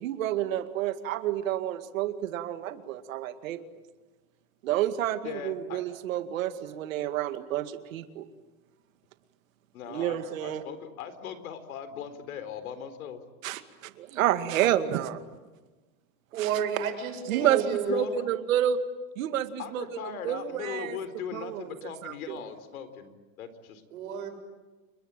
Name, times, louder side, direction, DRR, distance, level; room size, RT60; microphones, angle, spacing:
voice 1, 0.0-3.6 4.6-8.3 9.9-10.6 13.4-15.2 16.4-16.5 17.3-18.8 19.2-19.9 20.2-21.0 21.3-22.4, right 11 dB, 65° right, 9 dB, 2.3 m, -29 dB
voice 2, 5.2-5.8 9.7-13.2 17.4-17.6 17.9-18.2 19.6-23.8, left 8 dB, 80° left, 11 dB, 4.1 m, -39 dB
voice 3, 16.3-18.1 23.9-24.3, right 7 dB, 90° right, 5 dB, 7.8 m, -31 dB
30.0 x 22.0 x 9.1 m, 1.2 s
supercardioid pair, 175°, 42 cm